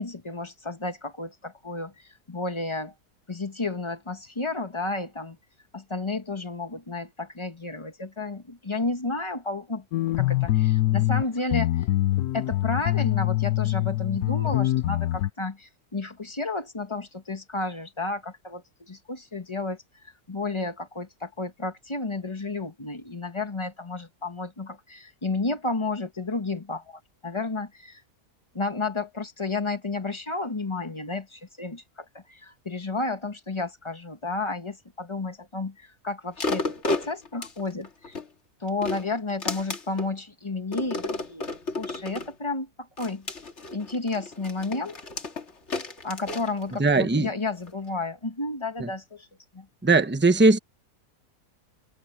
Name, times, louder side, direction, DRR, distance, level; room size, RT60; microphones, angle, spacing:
voice 1, 0.0-1.9 2.3-2.9 3.3-5.4 5.7-9.8 10.2-11.7 12.3-28.0 28.5-38.2 38.6-43.3 43.7-45.0 46.0-49.3 49.5-49.7, left 3 dB, 20° left, 1.4 m, -32 dB
sound 1, 9.9-11.2 11.5-15.3, left 16 dB, 80° left, 1.2 m, -24 dB
sound 2, 36.4-38.3 38.7-40.1 40.7-42.3 43.0-47.2 47.7-47.8, left 2 dB, 45° left, 2.2 m, -32 dB
voice 2, 46.8-47.3 48.8-48.9 49.8-50.6, right 3 dB, 10° right, 0.8 m, -19 dB
omnidirectional pair, 1.6 m